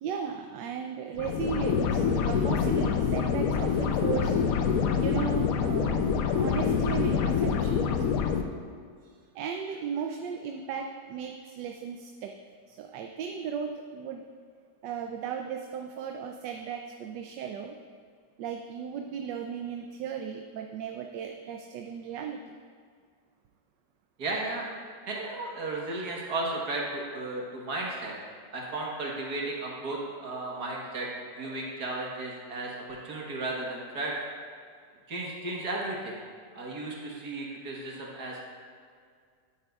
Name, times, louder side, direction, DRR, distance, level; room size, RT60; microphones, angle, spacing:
voice 1, 0.0-4.7 5.0-8.0 9.3-12.3 12.7-14.3 14.8-17.8 18.4-22.6, right 7 dB, 85° right, 4 dB, 1.2 m, -36 dB
sound 1, 1.2-8.4, left 6 dB, 65° left, 0.9 m, -26 dB
voice 2, 24.2-24.7 25.1-28.1 28.5-34.2 35.1-36.2 36.5-38.4, right 2 dB, 65° right, -2 dB, 1.8 m, -34 dB
12.0 x 9.1 x 2.4 m, 2.1 s
omnidirectional pair, 1.9 m